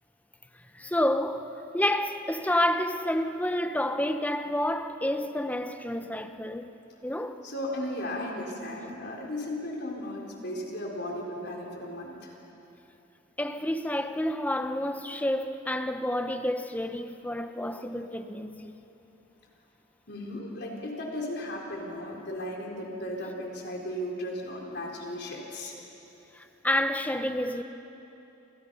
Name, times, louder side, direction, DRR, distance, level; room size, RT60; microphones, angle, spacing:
voice 1, 0.7-6.7 7.0-7.4 13.4-18.7 26.3-27.6, left 1 dB, 10° left, 0.8 m, -29 dB
voice 2, 7.4-12.3 17.8-17.9 20.1-25.8, left 1 dB, 55° left, 4.1 m, -36 dB
29.0 x 27.0 x 5.6 m
head